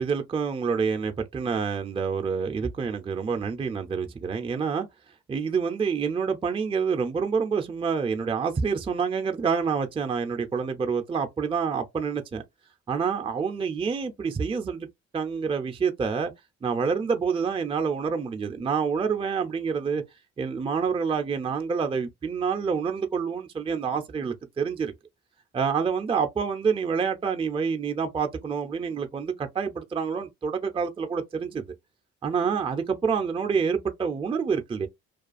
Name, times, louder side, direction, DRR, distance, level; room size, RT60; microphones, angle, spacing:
voice 1, 0.0-4.9 5.3-12.4 12.9-14.9 15.1-16.3 16.6-20.0 20.4-24.9 25.5-31.6 32.2-34.9, right 6 dB, 20° right, 0.4 m, -27 dB
2.3 x 2.3 x 2.4 m
cardioid pair, 90°, 30 cm